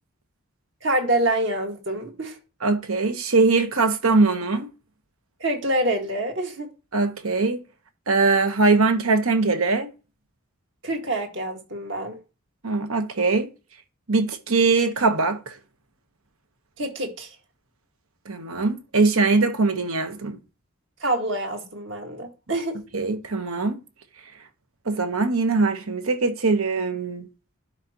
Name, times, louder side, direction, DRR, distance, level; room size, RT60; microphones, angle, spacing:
voice 1, 0.8-2.4 5.4-6.7 10.8-12.2 16.8-17.4 21.0-22.8, right 1 dB, 55° right, 1.9 m, -26 dB
voice 2, 2.6-4.7 6.9-7.6 8.1-9.9 12.6-13.5 14.1-15.5 18.2-20.4 22.9-23.8 24.8-27.3, right 3 dB, 80° right, 1.2 m, -21 dB
12.0 x 4.9 x 3.0 m
head